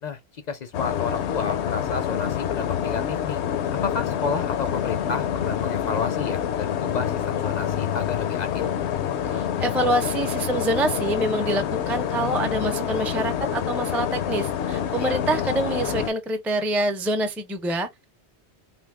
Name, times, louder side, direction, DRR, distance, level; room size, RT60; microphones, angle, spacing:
voice 1, 0.0-3.4 3.8-8.7 15.0-15.2, left 5 dB, 55° left, 0.5 m, -31 dB
sound 1, 0.7-16.1, left 9 dB, 75° left, 0.8 m, -27 dB
voice 2, 9.3-18.0, right 1 dB, ahead, 0.3 m, -26 dB
3.4 x 2.7 x 3.4 m
omnidirectional pair, 1.2 m